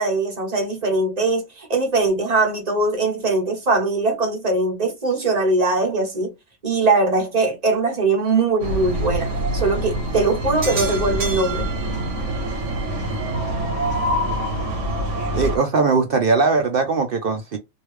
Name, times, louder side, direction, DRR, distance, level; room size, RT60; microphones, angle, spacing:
voice 1, 0.0-6.3 6.6-11.7, right 3 dB, 30° right, 1.1 m, -21 dB
sound 1, 8.6-15.6, right 1 dB, 55° right, 1.3 m, -25 dB
voice 2, 15.3-17.6, right 4 dB, 75° right, 0.5 m, -20 dB
3.1 x 2.7 x 3.1 m
omnidirectional pair, 1.6 m